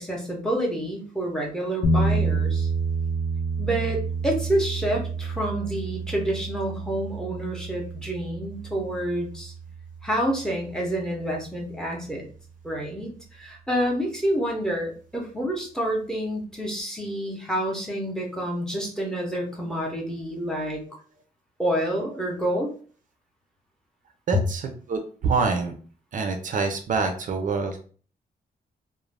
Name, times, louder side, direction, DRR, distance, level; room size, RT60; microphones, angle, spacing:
voice 1, 0.0-2.7 3.6-9.5 10.0-12.3 12.6-20.8 21.6-22.7, right 1 dB, 5° left, -1 dB, 0.6 m, -28 dB
sound 1, 1.8-11.9, right 3 dB, 80° left, 0.4 m, -29 dB
voice 2, 24.3-25.7 26.1-27.8, right 4 dB, 55° right, 5 dB, 0.4 m, -26 dB
2.4 x 2.0 x 3.2 m, 0.43 s
wide cardioid pair, 165°, 16 cm